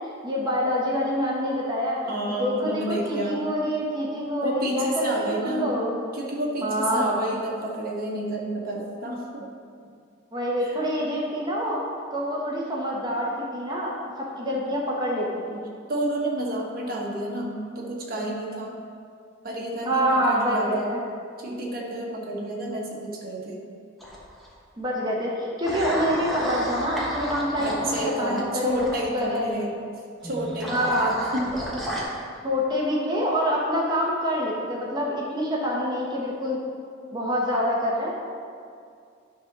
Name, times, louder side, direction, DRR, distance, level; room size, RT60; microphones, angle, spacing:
voice 1, 0.0-5.9 6.6-7.2 10.3-11.8 12.1-14.0 14.4-15.6 19.8-21.0 24.8-28.7 29.1-29.6 30.7-31.1 32.4-36.6 37.1-38.2, equal, 20° right, -4 dB, 1.0 m, -26 dB
voice 2, 2.1-3.5 4.4-5.8 6.1-9.5 10.6-10.8 15.9-18.8 19.4-20.9 21.4-23.6 27.6-29.8 30.2-31.6, right 1 dB, 45° right, -3 dB, 1.4 m, -30 dB
sound 1, 24.0-24.5 25.6-29.0 30.2-32.0, equal, ahead, 1.2 m, -32 dB
10.0 x 4.0 x 6.1 m, 2.3 s
head